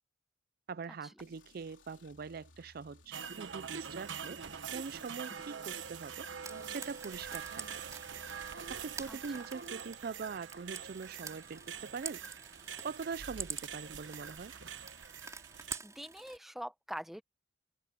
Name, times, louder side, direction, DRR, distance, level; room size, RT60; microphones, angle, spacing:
voice 1, 0.7-4.4 4.7-6.3 6.7-7.7 8.7-12.2 12.8-14.5, right 5 dB, 55° right, 0.4 m, -43 dB
sound 1, 1.2-8.6, left 2 dB, 80° left, 3.8 m, -62 dB
sound 2, 3.1-15.8, right 7 dB, 80° right, 1.1 m, -44 dB
Frying (food), 6.4-16.4, right 4 dB, 15° right, 4.2 m, -48 dB
voice 2, 9.1-9.4 15.8-17.2, equal, ahead, 0.8 m, -44 dB
head